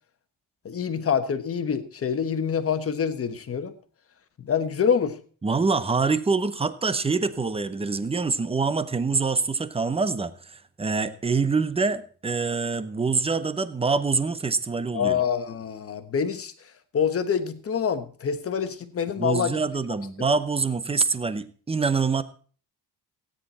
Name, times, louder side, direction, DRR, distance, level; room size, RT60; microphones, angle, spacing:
voice 1, 0.6-3.7 4.4-5.2 14.9-16.5 16.9-19.6, left 7 dB, 35° left, 9 dB, 1.3 m, -26 dB
voice 2, 5.4-15.2 19.2-22.2, right 4 dB, 15° right, 13 dB, 0.7 m, -25 dB
16.5 x 9.8 x 4.2 m, 0.41 s
cardioid pair, 175°, 40 cm